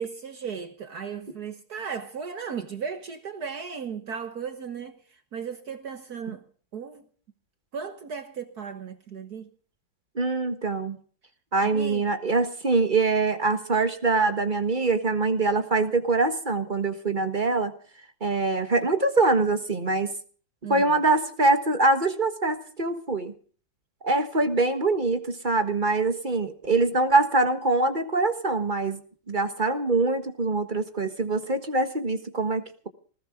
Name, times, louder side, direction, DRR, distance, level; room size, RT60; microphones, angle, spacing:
voice 1, 0.0-5.0 5.3-6.4 6.7-7.0 7.7-9.5 11.7-12.1 20.6-21.0, right 6 dB, 60° right, 1.8 m, -36 dB
voice 2, 10.1-11.0 11.5-17.7 18.2-20.1 20.7-23.3 24.0-29.0 29.3-32.9, right 3 dB, 30° right, 1.5 m, -24 dB
20.0 x 16.0 x 3.7 m
omnidirectional pair, 2.0 m